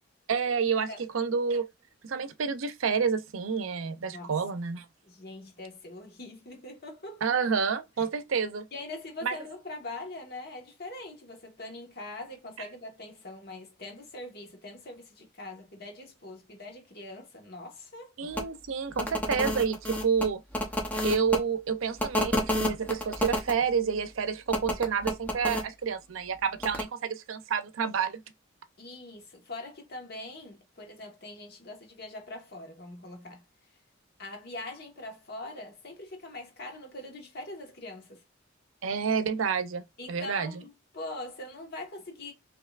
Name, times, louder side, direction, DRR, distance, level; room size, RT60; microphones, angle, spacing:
voice 1, 0.3-1.7 2.0-4.9 7.2-8.7 9.2-9.3 18.2-20.4 21.0-28.2 38.8-40.5, right 6 dB, 85° right, 0.5 m, -29 dB
voice 2, 5.0-7.2 8.7-18.1 28.8-33.4 34.2-38.2 40.0-42.3, left 2 dB, 50° left, 1.3 m, -42 dB
sound 1, 18.3-18.4 18.9-21.4 22.0-23.5 24.5-25.6 26.6-26.8, left 1 dB, 10° left, 0.7 m, -29 dB
5.2 x 2.9 x 2.4 m
head